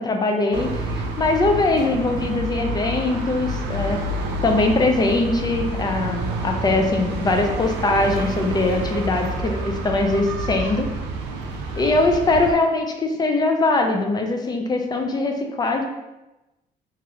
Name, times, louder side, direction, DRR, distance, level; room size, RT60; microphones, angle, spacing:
voice 1, 0.0-4.0 4.4-10.9 11.8-15.8, left 2 dB, 25° left, 4 dB, 0.4 m, -21 dB
sound 1, 0.5-12.5, right 1 dB, 85° right, 0.4 m, -28 dB
3.0 x 2.6 x 2.6 m, 1.0 s
cardioid pair, 110°, 17 cm